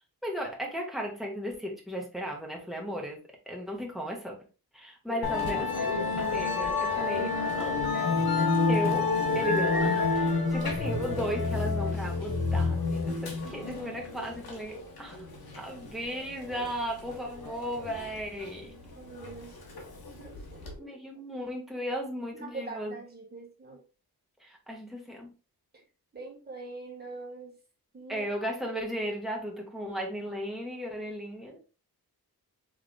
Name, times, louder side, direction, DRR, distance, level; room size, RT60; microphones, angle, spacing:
voice 1, 0.2-4.4 4.7-7.8 8.7-9.1 9.3-15.2 15.6-18.7 20.8-23.0 24.4-25.3 28.1-31.6, equal, ahead, -1 dB, 1.5 m, -36 dB
Musical instrument, 5.2-20.7, left 4 dB, 70° left, 1.4 m, -29 dB
voice 2, 19.0-19.8 20.2-21.0 22.4-23.8 26.1-27.6 27.9-28.3, right 3 dB, 25° right, 0 dB, 1.9 m, -43 dB
5.3 x 3.6 x 2.3 m, 0.32 s
wide cardioid pair, 125°, 38 cm